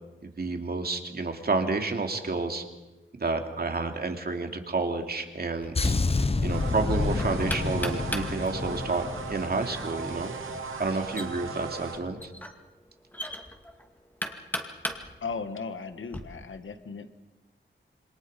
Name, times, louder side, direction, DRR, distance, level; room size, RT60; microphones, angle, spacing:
voice 1, 0.2-2.6 3.2-6.0 6.4-10.4 10.8-12.3, right 3 dB, 50° right, 4 dB, 2.7 m, -30 dB
Knock, 5.6-16.2, equal, 10° left, 2.3 m, -39 dB
sound 1, 5.7-10.3 10.6-10.9, left 3 dB, 30° left, 0.9 m, -29 dB
sound 2, 6.5-12.0, right 4 dB, 80° right, 2.6 m, -37 dB
voice 2, 15.2-17.1, left 4 dB, 75° left, 9 dB, 1.7 m, -36 dB
27.5 x 25.5 x 5.4 m, 1.1 s
wide cardioid pair, 105°, 20 cm